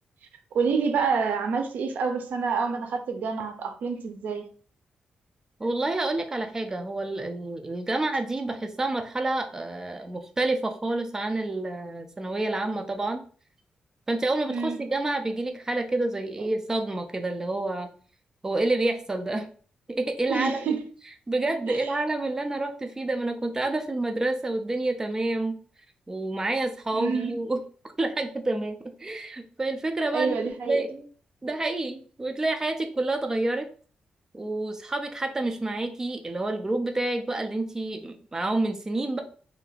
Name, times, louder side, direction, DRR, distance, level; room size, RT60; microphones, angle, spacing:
voice 1, 0.5-4.5 14.5-14.8 16.4-16.5 20.3-20.8 21.7-21.9 26.9-27.4 30.1-30.8, right 5 dB, 80° right, 0.6 m, -27 dB
voice 2, 5.6-13.2 14.1-17.9 18.4-19.5 19.9-20.6 21.3-25.5 26.1-27.6 28.0-30.4 30.7-31.1 31.4-33.7 34.3-39.2, right 2 dB, 20° right, 0.6 m, -28 dB
3.3 x 2.8 x 3.9 m
cardioid pair, 120°, 3 cm